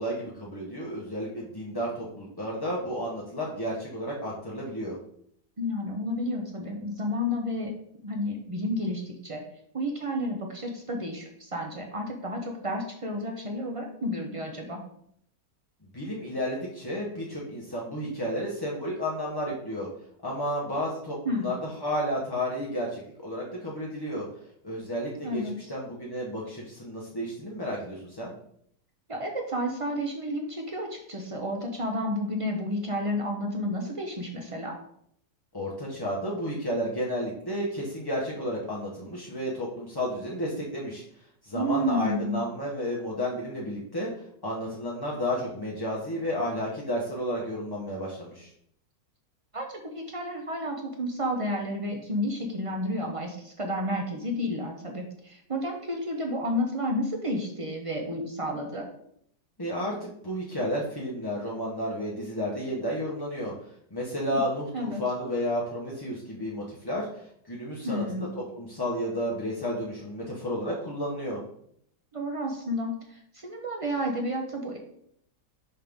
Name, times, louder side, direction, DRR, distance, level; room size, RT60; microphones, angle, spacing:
voice 1, 0.0-4.9 15.9-19.9 20.2-21.5 21.8-24.2 24.6-25.4 25.7-28.3 35.5-41.0 41.4-44.1 44.4-48.5 59.6-63.5 63.9-67.1 67.5-71.4, equal, 20° left, -4 dB, 0.6 m, -32 dB
voice 2, 5.6-7.7 8.0-9.4 9.7-14.8 21.2-21.5 25.2-25.7 29.1-34.7 41.5-42.4 49.5-58.9 64.3-64.4 64.7-65.0 67.8-68.3 72.1-74.8, equal, 50° right, 2 dB, 0.4 m, -31 dB
5.5 x 5.4 x 3.5 m, 0.69 s
omnidirectional pair, 1.8 m